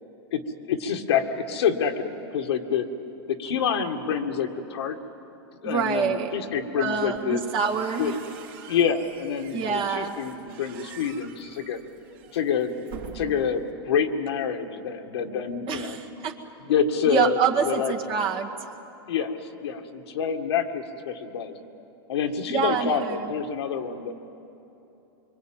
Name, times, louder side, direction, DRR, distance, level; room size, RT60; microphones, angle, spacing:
voice 1, 0.7-2.9 3.3-5.0 5.6-7.4 8.0-8.1 8.7-11.8 12.3-16.0 16.7-18.2 19.1-21.5 22.1-24.1, left 7 dB, 80° left, 5 dB, 2.0 m, -27 dB
voice 2, 5.6-6.4 6.8-8.2 9.5-10.2 15.7-16.4 17.1-18.5 22.5-23.3, right 7 dB, 40° right, 1 dB, 2.0 m, -26 dB
sound 1, 7.1-13.7, right 8 dB, 60° right, 3.3 m, -46 dB
24.5 x 24.0 x 9.1 m, 3.0 s
hypercardioid pair, 125°, 13 cm